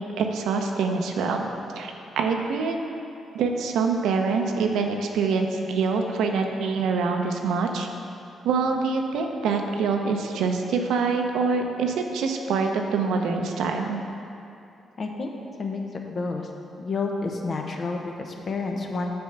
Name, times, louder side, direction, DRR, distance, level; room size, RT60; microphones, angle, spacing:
voice 1, 0.0-1.5 1.8-2.8 3.3-7.9 8.4-14.0, right 4 dB, 80° right, 3 dB, 0.6 m, -25 dB
voice 2, 15.0-15.3 15.6-15.8 16.1-16.5 16.8-19.1, left 3 dB, 50° left, 2 dB, 0.9 m, -29 dB
6.9 x 4.4 x 6.6 m, 2.7 s
supercardioid pair, 60°, 0 cm